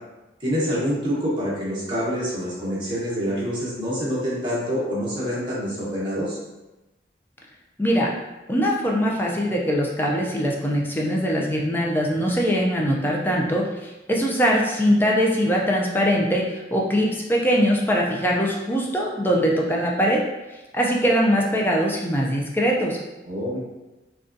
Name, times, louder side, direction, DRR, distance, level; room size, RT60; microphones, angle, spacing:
voice 1, 0.4-6.4 23.2-23.6, equal, 25° right, -8 dB, 1.1 m, -26 dB
voice 2, 7.8-8.1 8.5-20.2 20.7-23.0, equal, 10° left, -2 dB, 0.4 m, -22 dB
3.8 x 2.3 x 2.5 m, 1.1 s
head